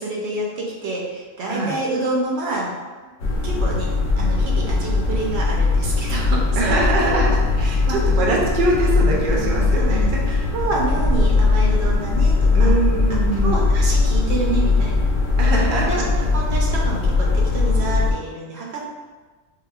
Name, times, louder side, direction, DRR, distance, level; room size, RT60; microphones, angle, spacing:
voice 1, 0.0-2.7 3.4-3.9 4.2-6.8 7.0-8.0 9.7-10.1 10.5-12.7 13.4-15.0 15.7-16.0 16.3-18.9, right 2 dB, 80° right, -2 dB, 0.9 m, -28 dB
sound 1, 3.2-18.1, left 3 dB, 60° left, 0.6 m, -19 dB
voice 2, 6.5-10.5 12.5-13.6 15.4-16.1, right 2 dB, 60° right, -2 dB, 0.7 m, -23 dB
3.6 x 2.2 x 2.3 m, 1.3 s
omnidirectional pair, 1.1 m